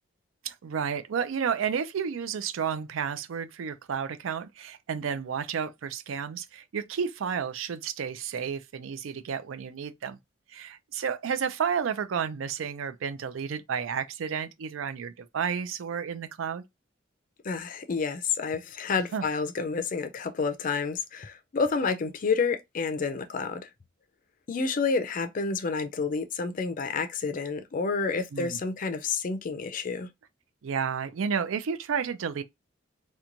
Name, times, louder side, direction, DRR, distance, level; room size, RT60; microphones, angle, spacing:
voice 1, 0.4-10.2 10.5-16.6 19.1-19.2 28.3-28.6 30.6-32.4, right 7 dB, 80° right, 0.4 m, -31 dB
voice 2, 17.4-23.7 24.5-30.1, left 4 dB, 40° left, 0.4 m, -29 dB
2.9 x 2.2 x 2.5 m
head